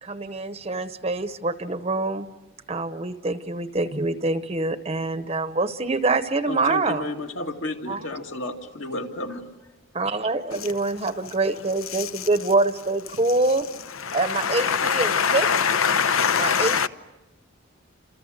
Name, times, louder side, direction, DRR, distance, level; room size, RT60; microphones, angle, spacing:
voice 1, 0.0-2.3 2.7-7.1 7.9-8.1 9.9-13.7 14.1-15.5 16.4-16.9, right 2 dB, 30° right, 0.8 m, -25 dB
voice 2, 6.5-9.4, left 2 dB, 65° left, 2.4 m, -32 dB
voice 3, 14.1-16.9, left 6 dB, 85° left, 0.9 m, -22 dB
29.5 x 27.5 x 6.5 m
head